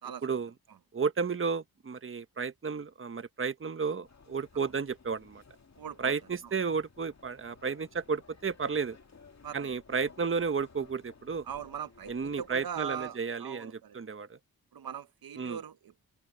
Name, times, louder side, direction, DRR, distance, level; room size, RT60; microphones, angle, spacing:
voice 1, 0.0-0.4 0.7-0.8 4.5-4.7 5.8-6.1 6.4-6.5 9.4-9.7 11.4-14.0 14.7-16.1, right 8 dB, 65° right, 0.9 m, -41 dB
voice 2, 0.9-5.4 6.0-9.0 9.5-11.4 12.1-14.4 15.4-15.6, right 5 dB, 35° right, 1.0 m, -32 dB
sound 1, 4.0-13.2, left 5 dB, 45° left, 2.4 m, -57 dB
open air
cardioid pair, 75°, 37 cm